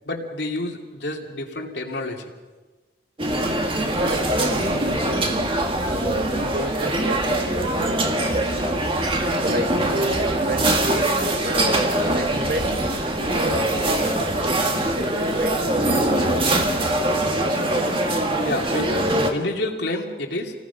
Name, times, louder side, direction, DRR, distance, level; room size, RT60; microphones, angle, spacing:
voice 1, 0.1-2.2 18.4-20.5, left 2 dB, 65° left, 2 dB, 2.7 m, -29 dB
sound 1, 3.2-19.3, right 1 dB, 30° right, 1.9 m, -23 dB
voice 2, 3.9-5.6 5.9-11.1 11.4-13.0 13.3-14.0 14.4-15.6, right 1 dB, 50° right, 4 dB, 2.2 m, -30 dB
28.0 x 19.5 x 5.9 m, 1.3 s
head